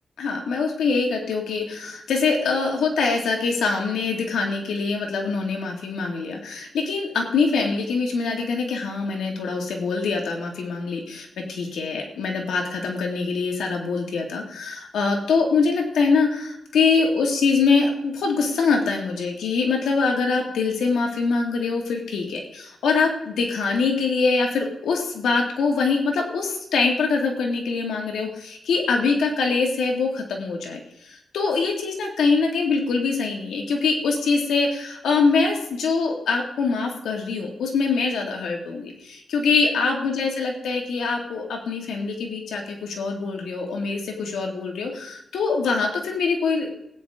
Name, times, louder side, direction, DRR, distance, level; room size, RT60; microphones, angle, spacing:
voice 1, 0.2-46.7, left 4 dB, 90° left, 1 dB, 2.3 m, -24 dB
19.0 x 9.5 x 3.8 m, 0.83 s
cardioid pair, 115°, 0 cm